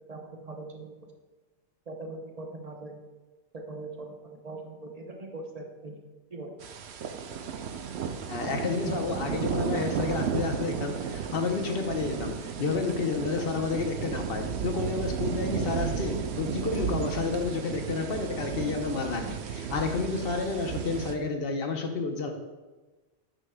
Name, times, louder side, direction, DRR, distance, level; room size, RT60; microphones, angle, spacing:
voice 1, 0.1-1.0 1.9-3.0 3.5-5.9 6.3-6.5 8.9-9.0, right 2 dB, 35° right, 1 dB, 0.8 m, -41 dB
sound 1, 6.6-21.1, right 7 dB, 70° right, 0.8 m, -33 dB
voice 2, 8.2-22.3, left 4 dB, 60° left, 4 dB, 1.0 m, -30 dB
9.1 x 6.2 x 2.2 m, 1.2 s
omnidirectional pair, 1.2 m